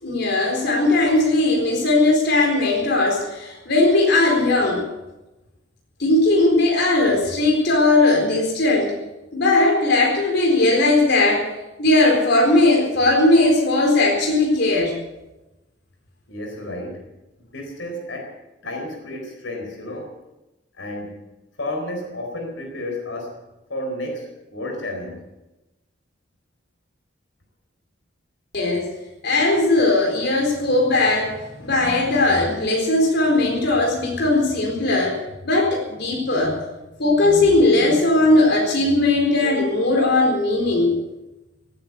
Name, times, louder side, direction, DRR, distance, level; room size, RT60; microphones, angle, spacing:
voice 1, 0.0-4.9 6.0-8.9 9.3-11.5 11.8-15.0 28.5-28.9 29.2-36.6 37.0-40.9, left 2 dB, 65° left, 0 dB, 4.1 m, -18 dB
voice 2, 16.3-17.1 17.4-18.4 18.6-20.1 20.7-21.2 21.6-23.4 23.7-25.2, left 1 dB, 90° left, 2 dB, 4.2 m, -31 dB
17.5 x 9.4 x 8.0 m, 1.0 s
head